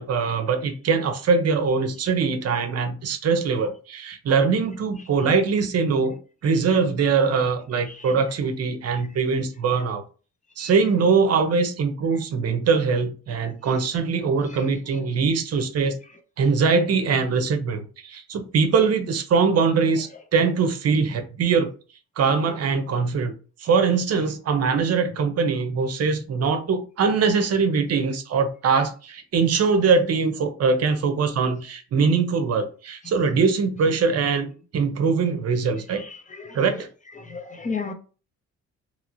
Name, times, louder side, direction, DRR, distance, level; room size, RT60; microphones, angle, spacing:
voice 1, 0.0-6.1 6.4-10.0 10.6-15.9 16.4-21.7 22.2-23.3 23.6-34.5 34.7-36.0 36.5-36.9, right 5 dB, 55° right, 0.7 m, -22 dB
voice 2, 35.9-36.8 37.2-37.9, left 4 dB, 25° left, 0.5 m, -34 dB
3.0 x 2.9 x 2.5 m
cardioid pair, 90°, 30 cm